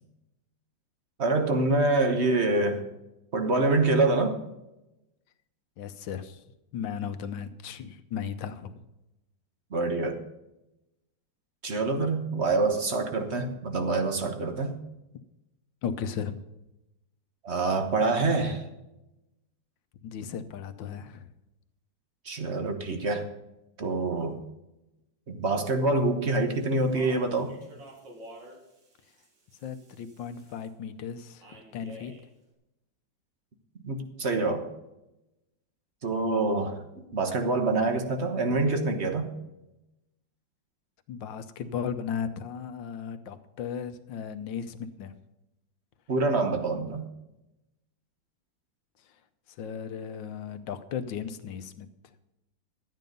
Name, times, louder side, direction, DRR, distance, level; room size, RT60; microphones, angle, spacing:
voice 1, 1.2-2.8 3.3-4.4 9.7-10.2 11.6-14.8 17.4-18.6 22.2-23.3 23.8-24.4 25.3-27.5 33.8-34.6 36.0-39.3 46.1-47.1, right 3 dB, 40° right, 6 dB, 1.4 m, -26 dB
voice 2, 5.8-6.4 6.7-8.8 15.8-16.4 20.0-21.3 29.6-31.5 31.7-32.1 41.1-45.1 49.6-51.9, left 7 dB, 85° left, 11 dB, 1.6 m, -36 dB
Speech, 26.5-30.7 31.4-32.3, right 1 dB, 75° right, 2.9 m, -50 dB
12.5 x 9.4 x 5.3 m, 0.94 s
omnidirectional pair, 2.0 m